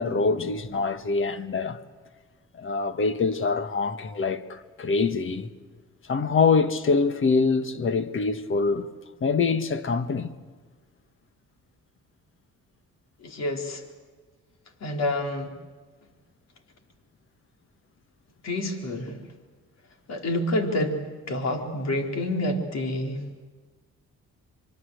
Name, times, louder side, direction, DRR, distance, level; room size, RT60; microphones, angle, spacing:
voice 1, 0.0-1.8 2.6-5.5 6.1-8.9 9.2-10.3, left 4 dB, 45° left, 1.5 m, -24 dB
voice 2, 13.2-13.8 14.8-15.5 18.4-19.2 20.1-23.3, left 1 dB, 60° left, 4.0 m, -28 dB
25.5 x 23.0 x 8.1 m
cardioid pair, 90°, 30 cm